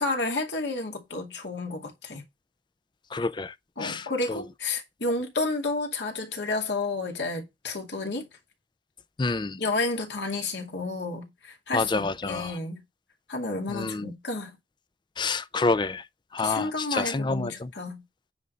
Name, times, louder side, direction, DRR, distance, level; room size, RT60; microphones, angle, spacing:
voice 1, 0.0-2.2 3.8-8.3 9.6-12.8 13.3-14.5 16.4-18.0, left 3 dB, 75° left, 2.3 m, -31 dB
voice 2, 3.1-3.5 3.8-4.4 9.2-9.6 11.7-12.5 13.7-14.1 15.2-16.0 16.3-17.7, left 3 dB, 25° left, 0.5 m, -28 dB
9.5 x 3.8 x 6.4 m
head